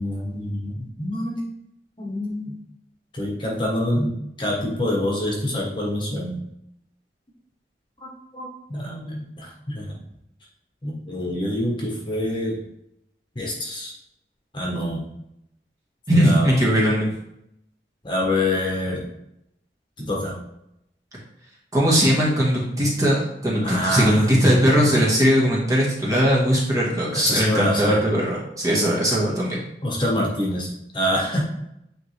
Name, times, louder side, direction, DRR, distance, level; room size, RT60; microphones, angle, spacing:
voice 1, 0.0-1.5 2.0-2.5 3.1-6.4 8.0-9.9 10.8-12.6 13.3-13.9 14.5-15.1 16.1-16.5 18.0-19.1 20.0-20.4 23.6-24.2 27.2-28.0 29.8-30.7 30.9-31.4, left 1 dB, 25° left, -2 dB, 1.2 m, -26 dB
voice 2, 16.1-17.1 21.7-29.6, equal, 20° right, -5 dB, 1.5 m, -19 dB
9.0 x 3.3 x 3.3 m, 0.80 s
head